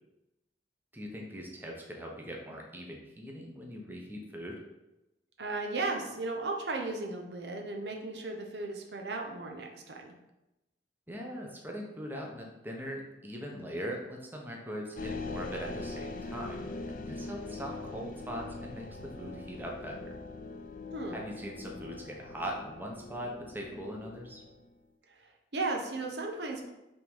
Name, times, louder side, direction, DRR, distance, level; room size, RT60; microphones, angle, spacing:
voice 1, 0.9-4.6 11.1-20.1 21.1-24.4, equal, 10° right, -1 dB, 0.9 m, -41 dB
voice 2, 5.4-10.1 20.9-21.2 25.1-25.3 25.5-26.7, right 3 dB, 65° right, 2 dB, 0.9 m, -35 dB
sound 1, 15.0-24.7, left 3 dB, 50° left, 0.5 m, -42 dB
5.6 x 3.6 x 5.5 m, 0.95 s
head